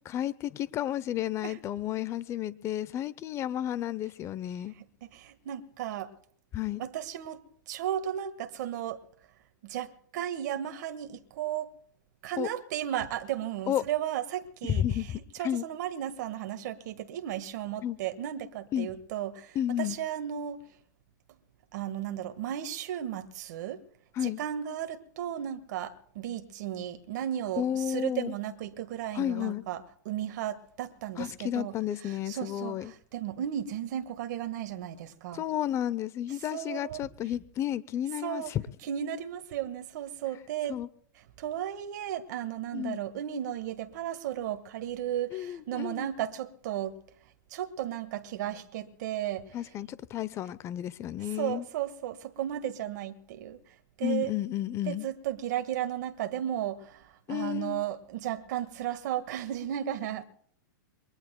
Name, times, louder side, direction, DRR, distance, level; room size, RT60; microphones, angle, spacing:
voice 1, 0.1-4.7 6.5-6.8 12.4-12.5 13.7-13.8 14.6-15.1 15.4-15.6 17.8-18.0 18.7-18.9 19.5-20.0 24.2-24.4 27.6-28.3 29.1-29.6 31.2-32.9 35.3-38.6 40.7-40.9 42.7-43.0 45.3-46.1 49.5-51.6 54.0-55.1 57.3-57.8, left 11 dB, 25° left, 0.7 m, -32 dB
voice 2, 4.7-6.1 6.8-9.0 9.6-11.7 12.2-20.7 21.7-23.8 24.2-31.8 32.0-35.4 36.5-37.1 38.2-38.5 38.8-40.8 41.4-47.0 47.5-49.6 51.2-54.3 54.8-60.2, right 11 dB, 55° right, 1.6 m, -35 dB
27.5 x 22.5 x 2.2 m
hypercardioid pair, 135°, 11 cm